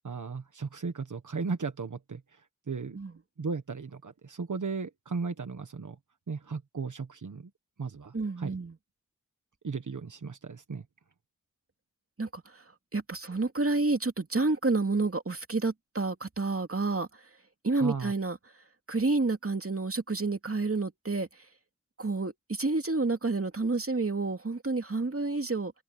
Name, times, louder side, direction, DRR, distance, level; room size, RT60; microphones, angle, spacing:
voice 1, 0.0-2.2 2.7-3.0 3.4-6.0 6.3-7.5 7.8-8.5 9.6-10.8 17.8-18.1, right 4 dB, 85° right, 1.4 m, -35 dB
voice 2, 8.1-8.8 12.2-12.6 12.9-17.1 17.6-18.4 18.9-21.3 22.0-25.7, right 3 dB, 50° right, 2.7 m, -29 dB
wide cardioid pair, 55°, 29 cm